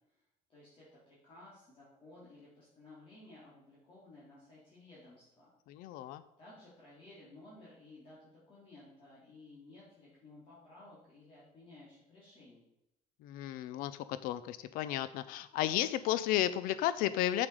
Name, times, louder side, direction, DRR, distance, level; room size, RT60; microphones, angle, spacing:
voice 1, 0.5-5.5 5.9-6.0 6.4-12.7, left 2 dB, 40° left, -8 dB, 3.3 m, -56 dB
voice 2, 5.7-6.2 13.2-17.5, left 13 dB, 85° left, 14 dB, 0.5 m, -33 dB
7.8 x 7.4 x 4.8 m, 0.84 s
cardioid pair, 155°, 14 cm